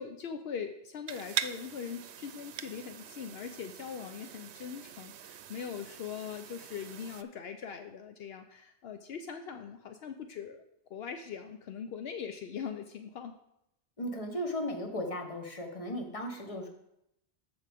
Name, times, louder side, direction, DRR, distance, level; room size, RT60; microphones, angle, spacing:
voice 1, 0.0-10.6 10.9-13.4, left 7 dB, 75° left, 6 dB, 0.8 m, -41 dB
sound 1, 1.1-7.2, right 9 dB, 85° right, 0.8 m, -42 dB
voice 2, 14.0-16.7, left 1 dB, 35° left, 3 dB, 1.2 m, -36 dB
14.0 x 4.9 x 3.5 m, 0.81 s
omnidirectional pair, 1.1 m